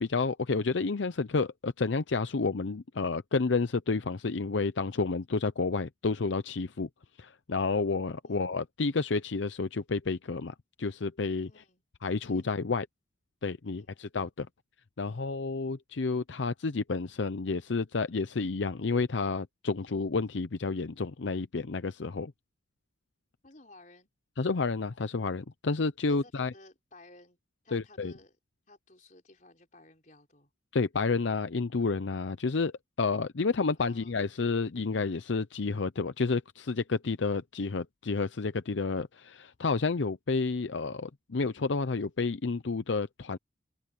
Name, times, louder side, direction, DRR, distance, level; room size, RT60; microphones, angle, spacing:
voice 1, 0.0-6.9 7.2-11.5 12.0-12.9 13.4-14.5 15.0-22.3 24.4-26.5 27.7-28.1 30.7-32.7 33.0-43.4, left 4 dB, 75° left, 0.6 m, -30 dB
voice 2, 8.2-8.5 11.4-11.8 12.3-12.5 13.6-13.9 15.0-15.3 23.4-24.1 26.1-27.4 27.6-28.4 28.7-30.5 33.8-34.2, left 2 dB, 40° left, 4.3 m, -56 dB
head